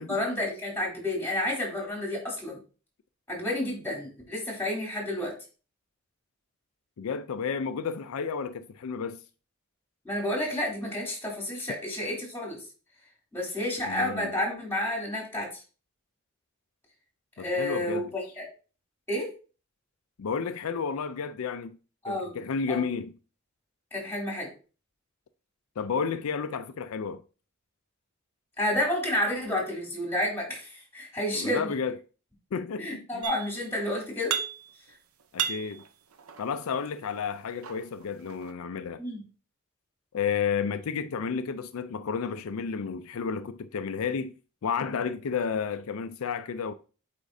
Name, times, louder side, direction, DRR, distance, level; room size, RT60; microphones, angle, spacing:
voice 1, 0.0-2.6 3.3-5.3 10.0-12.6 13.3-15.6 17.4-18.4 19.1-19.3 22.0-22.3 22.7-22.8 23.9-24.5 28.6-31.7 32.8-34.4 39.0-39.2, left 1 dB, 10° left, 3.0 m, -30 dB
voice 2, 7.0-9.2 13.9-14.3 17.4-18.1 20.2-21.8 22.1-23.1 25.8-27.2 31.3-32.0 32.5-33.2 35.3-35.8 36.4-39.0 40.1-44.3 44.6-46.7, left 6 dB, 80° left, 0.4 m, -31 dB
sound 1, 33.2-33.8 34.0-34.9 35.2-36.8 37.4-38.5, right 8 dB, 85° right, 0.7 m, -34 dB
8.1 x 5.0 x 2.7 m
head